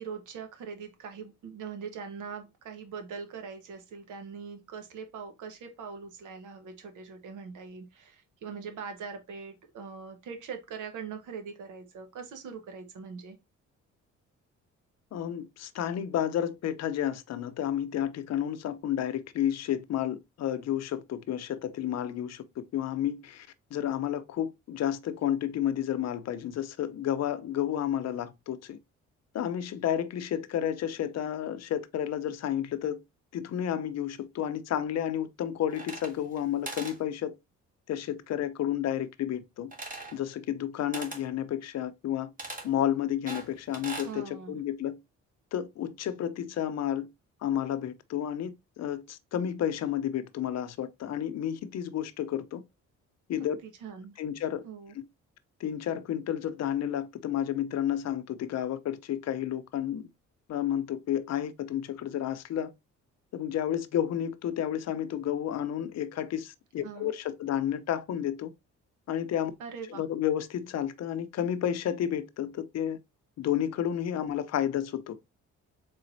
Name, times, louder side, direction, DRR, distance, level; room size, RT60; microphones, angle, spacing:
voice 1, 0.0-13.4 44.0-44.6 53.6-54.2 54.6-54.9 66.8-67.1 69.6-70.0, right 6 dB, 80° right, 1.1 m, -42 dB
voice 2, 15.1-28.8 29.3-33.0 33.3-37.3 37.9-39.7 40.1-42.3 42.6-45.0 45.5-47.1 47.4-52.6 53.3-53.6 54.2-54.6 54.9-55.0 55.6-60.1 60.5-62.7 63.3-68.5 69.1-69.5 69.9-73.0 73.4-75.2, left 10 dB, 60° left, 0.6 m, -31 dB
sound 1, 35.7-36.4 36.7-37.0 39.7-40.2 40.9-41.3 42.4-42.7 43.3-44.1, right 2 dB, 30° right, 1.5 m, -40 dB
4.2 x 3.8 x 2.6 m
cardioid pair, 90°, 30 cm